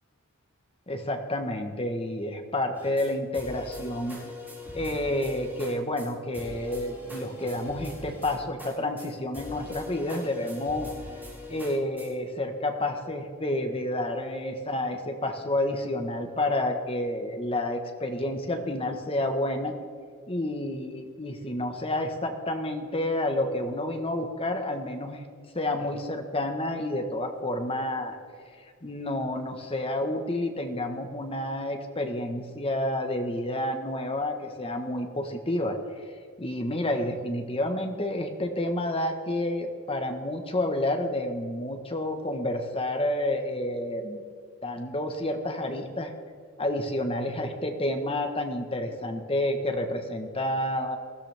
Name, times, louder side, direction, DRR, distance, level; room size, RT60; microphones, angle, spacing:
voice 1, 0.9-4.2 4.7-10.9 11.5-19.7 20.3-25.2 25.5-28.2 28.8-35.8 36.4-44.2 44.6-46.1 46.6-51.0, left 1 dB, 25° left, 5 dB, 1.3 m, -29 dB
sound 1, 2.7-3.1 3.3-5.7 6.0-6.1 6.3-8.7 9.0-9.1 9.3-12.1, left 2 dB, 10° right, 4.3 m, -42 dB
20.0 x 14.5 x 3.5 m, 2.1 s
head